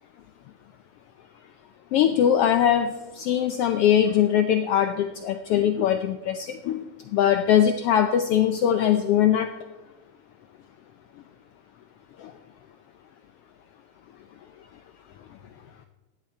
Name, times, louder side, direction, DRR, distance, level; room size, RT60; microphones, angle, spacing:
voice 1, 1.9-6.8 7.1-9.5 12.2-12.3, left 9 dB, 80° left, 8 dB, 1.3 m, -21 dB
16.0 x 10.5 x 4.4 m, 1.1 s
omnidirectional pair, 3.3 m